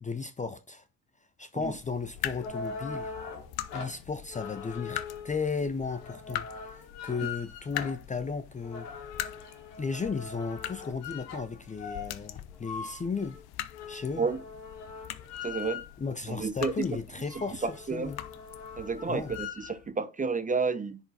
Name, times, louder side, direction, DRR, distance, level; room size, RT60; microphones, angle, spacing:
voice 1, 0.0-0.8 1.4-3.1 3.7-8.9 9.8-13.4 13.9-14.3 16.0-18.2 19.1-19.3, left 5 dB, 15° left, 0.6 m, -35 dB
sound 1, 1.6-19.5, left 13 dB, 50° left, 0.9 m, -43 dB
sound 2, 2.1-16.1 16.6-16.7 17.0-19.8, left 5 dB, 75° left, 1.9 m, -42 dB
voice 2, 15.4-15.8 16.3-16.7 17.6-18.1 18.8-21.0, right 4 dB, 15° right, 0.8 m, -30 dB
10.5 x 4.5 x 4.1 m
figure-of-eight pair, 65°, 48 cm